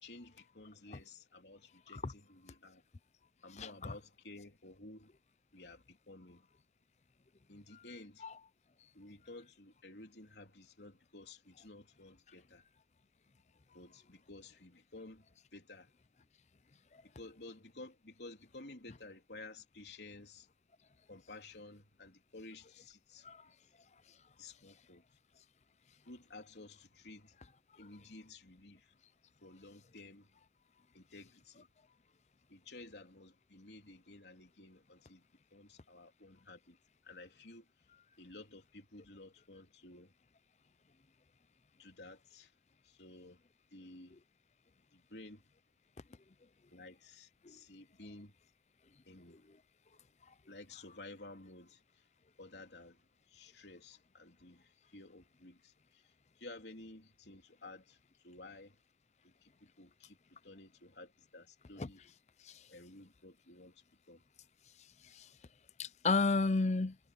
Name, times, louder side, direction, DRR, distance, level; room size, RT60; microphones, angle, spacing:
voice 1, 0.0-2.8 3.4-5.1 5.5-6.5 7.5-8.3 8.9-12.6 13.7-15.9 17.0-20.5 21.1-23.3 24.4-25.0 26.1-27.3 27.8-28.9 29.4-30.3 30.9-31.7 32.5-35.3 35.5-36.8 37.0-37.7 38.2-40.1 41.8-42.5 42.8-43.4 43.7-44.2 44.9-45.4 46.7-48.3 49.1-49.4 50.5-52.0 52.4-53.0 53.3-56.0 56.4-58.0 58.2-58.8 59.2-62.0 62.7-64.2, left 2 dB, 80° left, 3.3 m, -53 dB
voice 2, 3.6-3.9 8.2-8.3 23.2-23.4 47.4-47.5 61.8-61.9 65.2-65.3 65.8-67.0, left 3 dB, 40° left, 0.5 m, -32 dB
head